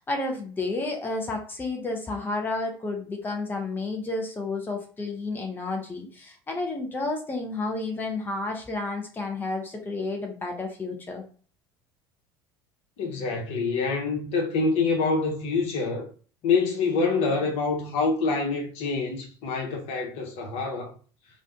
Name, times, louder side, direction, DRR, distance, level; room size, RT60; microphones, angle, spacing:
voice 1, 0.0-11.2, left 2 dB, 15° left, 0.6 m, -31 dB
voice 2, 13.0-16.1 16.4-20.9, left 4 dB, 50° left, 0.9 m, -26 dB
2.5 x 2.2 x 3.4 m
figure-of-eight pair, 70°, 14 cm